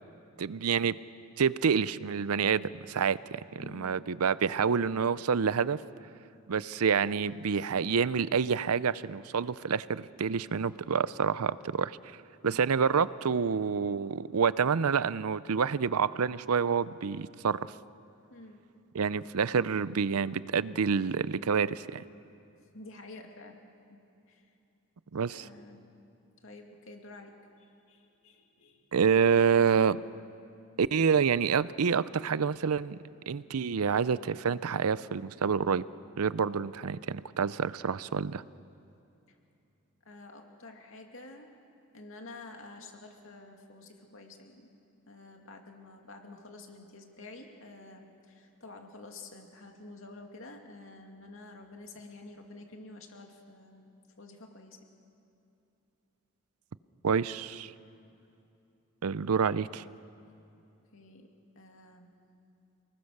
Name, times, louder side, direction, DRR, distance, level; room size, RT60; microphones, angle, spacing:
voice 1, 0.4-1.0 1.4-5.8 6.5-12.0 12.4-17.6 18.9-22.0 25.1-25.5 28.9-30.0 30.8-33.0 33.3-35.8 36.2-38.4 57.0-57.7 59.0-59.8, right 6 dB, 85° right, 17 dB, 0.6 m, -28 dB
voice 2, 3.6-4.0 12.4-12.7 18.3-18.6 22.7-24.0 24.3-24.5 25.3-25.9 26.4-28.8 39.3-39.4 40.1-41.5 41.9-44.7 45.1-53.9 54.2-54.8 60.9-61.3 61.6-62.2, left 2 dB, 65° left, 3 dB, 2.5 m, -49 dB
28.5 x 20.0 x 6.6 m, 2.8 s
head